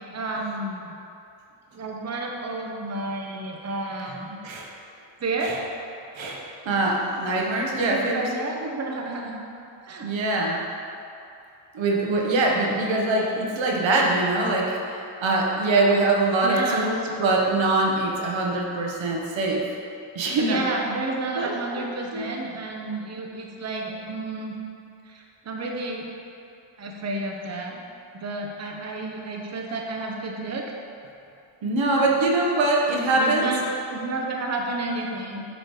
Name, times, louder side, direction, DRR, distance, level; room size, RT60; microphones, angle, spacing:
voice 1, 0.1-0.9 1.7-4.4 5.2-5.5 6.8-7.0 7.8-9.4 9.8-10.1 16.4-17.0 20.4-24.6 25.1-26.1 26.8-27.8 28.1-30.7 31.9-32.1 33.1-35.5, right 2 dB, 35° right, 0 dB, 0.8 m, -31 dB
voice 2, 6.1-8.3 10.0-10.6 11.7-19.6 20.1-20.7 21.4-21.8 22.1-22.3 31.6-33.5, right 2 dB, 80° right, -1 dB, 0.9 m, -23 dB
6.5 x 3.2 x 4.7 m, 2.6 s
cardioid pair, 70°, 45 cm